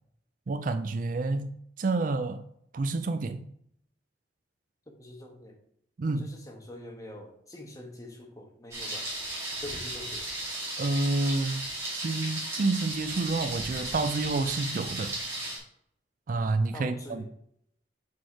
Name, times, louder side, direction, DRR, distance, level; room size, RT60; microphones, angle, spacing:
voice 1, 0.5-2.4 2.7-3.5 6.0-6.3 10.8-11.7 11.9-15.1 16.3-17.2, right 3 dB, 45° right, 9 dB, 0.4 m, -29 dB
voice 2, 4.9-5.6 6.1-9.1 9.6-10.3 16.7-17.3, left 1 dB, 20° left, 2 dB, 1.2 m, -45 dB
Thunder, 8.7-15.6, right 1 dB, 15° right, 2.4 m, -35 dB
6.3 x 4.8 x 4.7 m, 0.71 s
head